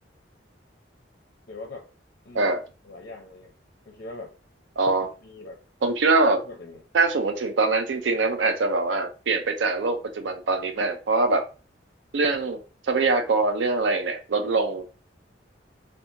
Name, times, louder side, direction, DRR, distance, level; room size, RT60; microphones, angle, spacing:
voice 1, 1.5-1.9 2.2-2.5 2.8-3.5 3.9-4.4 5.2-5.6 6.4-6.8, left 2 dB, 55° left, 0.5 m, -41 dB
voice 2, 4.8-5.1 5.8-6.4 6.9-11.4 12.1-12.6 12.8-14.9, right 3 dB, 80° right, 0.5 m, -23 dB
2.8 x 2.3 x 2.5 m
head